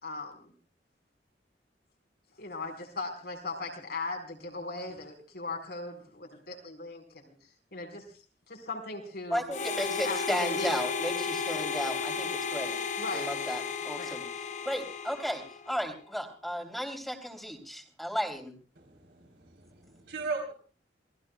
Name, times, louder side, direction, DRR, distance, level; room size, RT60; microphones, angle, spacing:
voice 1, 0.0-0.5 2.4-7.3 7.7-8.1 8.5-9.4 10.0-10.8 13.0-13.4 14.0-14.1, left 3 dB, 60° left, 4 dB, 4.4 m, -38 dB
voice 2, 9.3-12.7 13.1-14.2 14.6-18.5, equal, ahead, 4 dB, 3.1 m, -34 dB
Harmonica, 9.5-15.9, left 5 dB, 45° left, 0.7 m, -34 dB
voice 3, 18.8-20.5, right 4 dB, 75° right, 1 dB, 3.6 m, -38 dB
28.0 x 19.5 x 2.3 m, 0.37 s
head